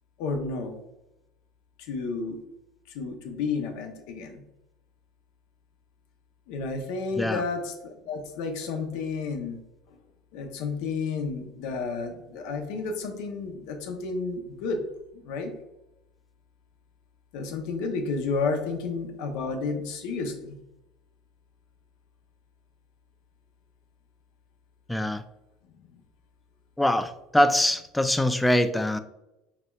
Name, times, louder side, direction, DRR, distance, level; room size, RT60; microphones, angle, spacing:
voice 1, 0.2-0.7 1.9-2.4 2.9-4.4 6.5-9.6 10.3-14.8 15.1-15.5 17.3-20.6, left 4 dB, 75° left, 4 dB, 0.7 m, -31 dB
voice 2, 24.9-25.2 26.8-29.0, left 1 dB, 5° left, 10 dB, 0.3 m, -23 dB
4.1 x 4.0 x 2.3 m, 0.90 s
supercardioid pair, 95°, 0 cm